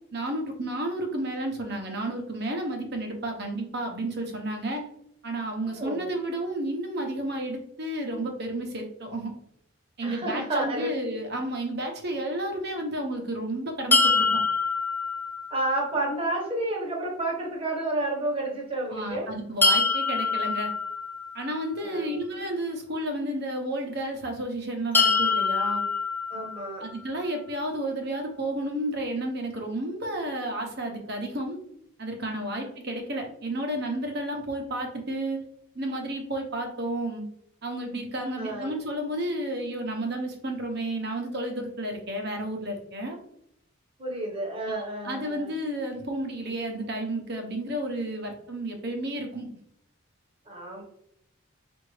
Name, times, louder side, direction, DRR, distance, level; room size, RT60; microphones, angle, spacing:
voice 1, 0.1-4.8 5.2-9.3 10.0-14.4 18.9-20.7 21.3-25.8 26.8-31.6 32.0-35.4 35.7-37.2 37.6-43.2 44.7-49.5, right 1 dB, 50° right, 2 dB, 0.9 m, -32 dB
voice 2, 10.0-10.9 15.5-19.3 21.8-22.2 26.3-26.8 38.4-38.8 44.0-45.5 50.5-50.8, right 1 dB, 25° right, -1 dB, 1.1 m, -30 dB
sound 1, 13.9-15.9 19.6-21.7 24.9-27.0, left 4 dB, 10° left, 0.3 m, -25 dB
4.9 x 2.6 x 3.2 m, 0.72 s
head